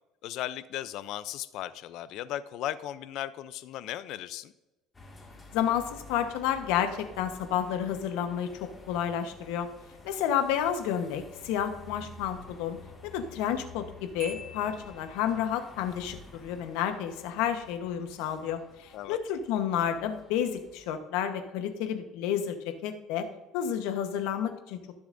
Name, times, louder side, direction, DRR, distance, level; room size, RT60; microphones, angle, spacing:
voice 1, 0.2-4.5 18.9-19.2, left 13 dB, 60° left, 15 dB, 0.5 m, -36 dB
sound 1, 4.9-20.9, left 2 dB, 15° left, 2.0 m, -51 dB
voice 2, 5.5-9.7 10.0-12.8 13.0-22.6 22.8-23.3 23.5-24.8, left 9 dB, 85° left, 8 dB, 1.0 m, -30 dB
Marimba xylophone, 14.2-15.6, equal, 25° right, 3.4 m, -46 dB
18.5 x 6.9 x 2.6 m, 1.1 s
cardioid pair, 140°, 0 cm